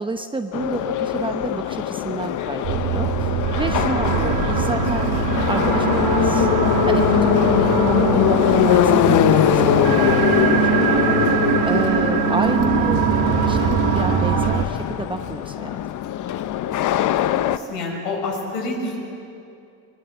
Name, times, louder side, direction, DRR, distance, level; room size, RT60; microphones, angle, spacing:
voice 1, 0.0-6.5 6.9-15.8, right 3 dB, 10° right, 6 dB, 0.9 m, -30 dB
Subway metro underground, 0.5-17.6, left 12 dB, 50° left, 0.9 m, -21 dB
sound 1, 2.6-14.6, right 8 dB, 55° right, 1.7 m, -22 dB
voice 2, 17.5-19.0, left 2 dB, 85° left, 0 dB, 6.5 m, -27 dB
25.0 x 22.0 x 8.2 m, 2.5 s
cardioid pair, 135°, 40 cm